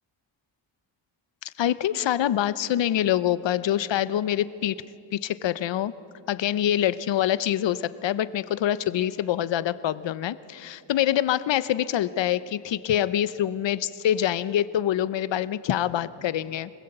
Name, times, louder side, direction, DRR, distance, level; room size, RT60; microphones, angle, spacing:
voice 1, 1.4-4.8 5.1-5.9 6.3-16.7, left 11 dB, 75° left, 16 dB, 0.8 m, -25 dB
25.5 x 19.5 x 7.9 m, 2.6 s
wide cardioid pair, 135°, 44 cm